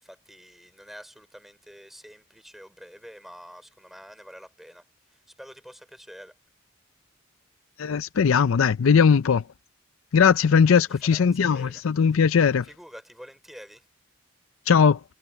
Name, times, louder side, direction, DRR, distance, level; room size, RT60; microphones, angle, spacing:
voice 1, 0.0-4.8 5.1-6.3 11.0-11.3 11.5-11.8 12.7-13.8, equal, ahead, 4.7 m, -47 dB
voice 2, 7.8-9.4 10.1-12.7 14.7-15.0, left 6 dB, 75° left, 0.5 m, -19 dB
head